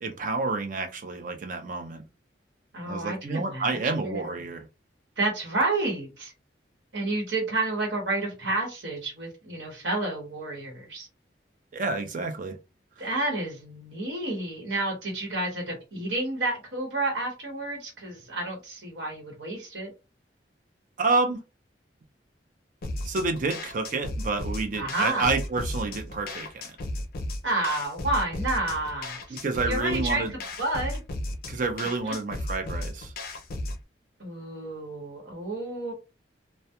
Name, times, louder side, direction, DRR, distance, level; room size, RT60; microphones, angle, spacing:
voice 1, 0.0-2.0 2.9-4.7 11.7-12.6 13.0-13.1 21.0-21.4 23.1-26.8 29.3-30.3 31.5-33.1, right 3 dB, 45° right, 0.5 m, -29 dB
voice 2, 2.7-4.5 5.2-6.3 6.9-11.1 13.0-19.9 24.8-25.3 27.4-29.4 29.7-30.3 30.6-31.0 32.0-32.1 34.2-35.9, right 2 dB, 80° right, 1.1 m, -30 dB
sound 1, 22.8-33.8, left 1 dB, 55° left, 0.4 m, -35 dB
2.2 x 2.1 x 2.8 m
head